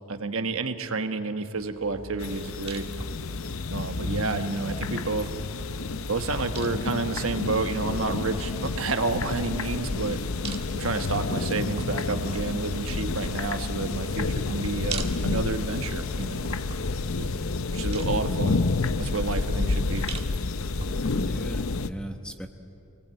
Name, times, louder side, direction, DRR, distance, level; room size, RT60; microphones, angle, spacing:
voice 1, 0.1-2.9 3.7-5.3 6.1-10.2 10.7-16.5 17.2-18.6 19.0-20.1, right 3 dB, 70° right, 7 dB, 1.3 m, -30 dB
sound 1, 1.6-21.1, right 2 dB, 25° right, 1.5 m, -42 dB
sound 2, 2.2-21.9, left 3 dB, 70° left, 0.7 m, -30 dB
voice 2, 21.1-22.5, equal, 5° left, 6 dB, 1.0 m, -37 dB
26.0 x 19.5 x 8.9 m, 2.9 s
head